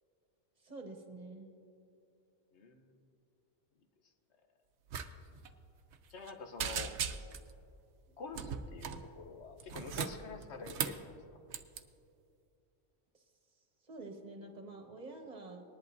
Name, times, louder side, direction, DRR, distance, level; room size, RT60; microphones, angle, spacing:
voice 1, 0.6-1.5 13.1-13.2 13.8-15.6, right 2 dB, 40° right, 2 dB, 1.4 m, -48 dB
voice 2, 2.5-2.9 6.1-7.0 8.2-11.0, left 4 dB, 80° left, 5 dB, 1.2 m, -47 dB
sound 1, 4.9-5.1 5.3-5.5 5.9-6.3 6.6-7.5 8.3-9.1 9.6-11.1 11.5-11.8, right 7 dB, 85° right, 0.9 m, -38 dB
19.5 x 11.0 x 2.6 m, 2.5 s
omnidirectional pair, 1.2 m